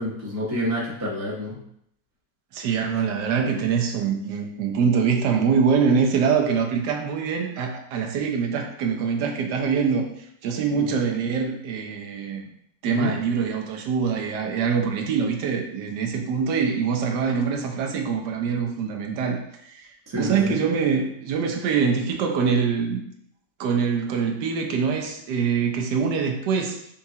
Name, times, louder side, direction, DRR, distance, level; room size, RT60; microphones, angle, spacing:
voice 1, 0.0-1.6 10.7-10.9 12.9-13.1 20.1-20.5, left 1 dB, 15° right, -6 dB, 0.6 m, -28 dB
voice 2, 2.5-12.4 12.8-23.0 23.6-26.8, right 6 dB, 80° right, 3 dB, 1.2 m, -24 dB
5.4 x 2.4 x 2.7 m, 0.71 s
omnidirectional pair, 1.9 m